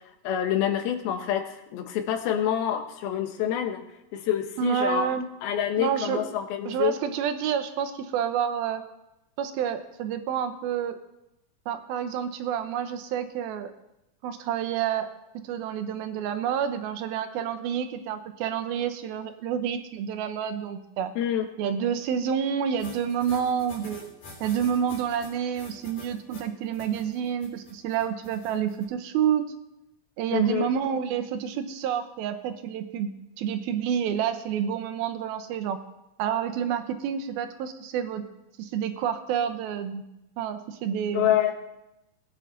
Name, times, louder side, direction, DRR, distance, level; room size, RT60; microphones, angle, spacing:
voice 1, 0.2-3.8 4.1-5.1 5.4-6.9 21.2-21.5 30.3-30.7 41.1-41.5, left 10 dB, 85° left, 6 dB, 3.1 m, -27 dB
voice 2, 4.6-5.3 5.8-6.3 6.6-8.8 9.4-11.0 11.7-13.7 14.2-15.1 15.5-21.1 21.6-24.0 24.4-29.4 30.2-33.1 33.4-35.8 36.2-38.2 38.6-40.0 40.4-41.4, right 8 dB, 90° right, 7 dB, 2.8 m, -28 dB
sound 1, 22.8-28.9, left 3 dB, 60° left, 5.0 m, -46 dB
20.0 x 9.0 x 4.0 m, 0.90 s
omnidirectional pair, 4.2 m